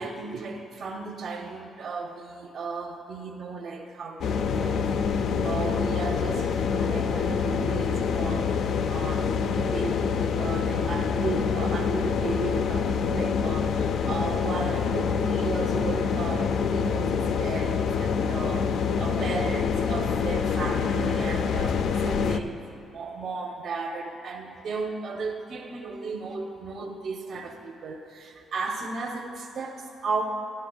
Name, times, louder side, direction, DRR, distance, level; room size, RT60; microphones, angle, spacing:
voice 1, 0.0-30.2, right 4 dB, 60° right, 1 dB, 0.6 m, -35 dB
sound 1, 4.2-22.4, left 6 dB, 70° left, 0.3 m, -26 dB
12.5 x 11.5 x 2.2 m, 2.9 s
cardioid pair, 90°, 0 cm